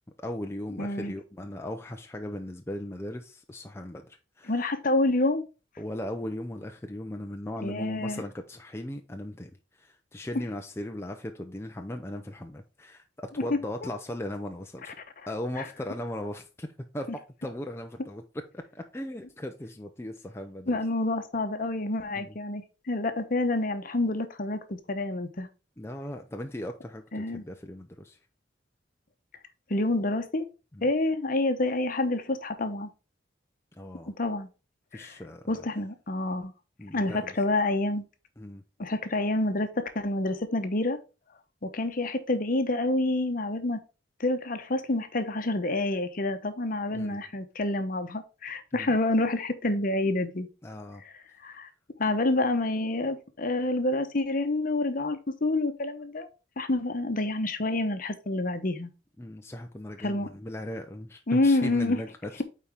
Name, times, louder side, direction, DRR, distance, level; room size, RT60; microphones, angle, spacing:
voice 1, 0.2-4.5 5.8-14.9 15.3-18.2 18.5-20.8 22.2-22.3 25.8-28.2 30.7-30.9 33.7-34.1 34.9-35.5 36.8-37.3 38.4-38.6 46.9-47.2 48.7-49.0 50.6-51.0 59.2-62.4, left 1 dB, 15° left, 0.5 m, -38 dB
voice 2, 0.8-1.1 4.5-5.4 7.6-8.2 20.7-25.5 27.1-27.4 29.7-30.5 30.8-32.9 34.2-34.5 34.9-35.1 35.5-36.5 36.9-38.0 38.8-41.0 41.6-43.8 44.2-50.5 51.4-51.7 52.0-56.3 56.6-58.9 60.0-60.3 61.3-62.0, left 2 dB, 50° left, 0.9 m, -28 dB
8.8 x 4.3 x 3.5 m
head